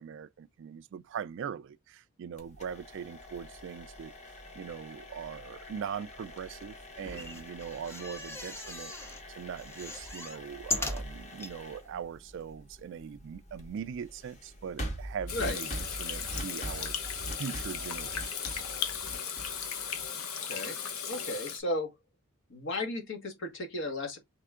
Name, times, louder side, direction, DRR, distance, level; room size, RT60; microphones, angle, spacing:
voice 1, 0.0-4.1 4.5-8.9 9.3-15.7 16.0-16.9 17.4-18.6, right 7 dB, 60° right, 0.3 m, -41 dB
sound 1, 2.4-20.3, equal, 35° left, 1.0 m, -44 dB
sound 2, 7.0-9.2 9.6-11.5 12.1-12.2 12.4-12.5, left 2 dB, 10° left, 0.6 m, -38 dB
Water tap faucet / Sink (filling or washing), 15.3-21.6, left 7 dB, 85° left, 0.9 m, -36 dB
voice 2, 15.3-15.6 20.5-20.8 21.0-21.9 22.5-24.2, left 2 dB, 60° left, 1.3 m, -34 dB
3.5 x 3.3 x 3.6 m
head